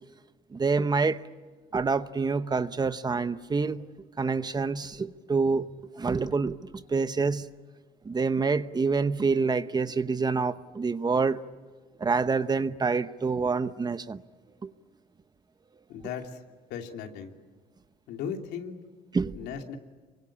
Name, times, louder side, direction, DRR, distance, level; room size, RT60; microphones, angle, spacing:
voice 1, 0.5-1.2 1.7-3.9 4.2-5.7 6.0-7.5 8.0-11.4 12.0-14.2 14.6-14.7 19.1-19.4, right 4 dB, 25° right, 0.9 m, -27 dB
voice 2, 15.9-16.4 16.7-17.4 18.1-18.8 19.4-19.8, left 7 dB, 85° left, 3.0 m, -36 dB
27.5 x 24.0 x 8.6 m
cardioid pair, 110°, 17 cm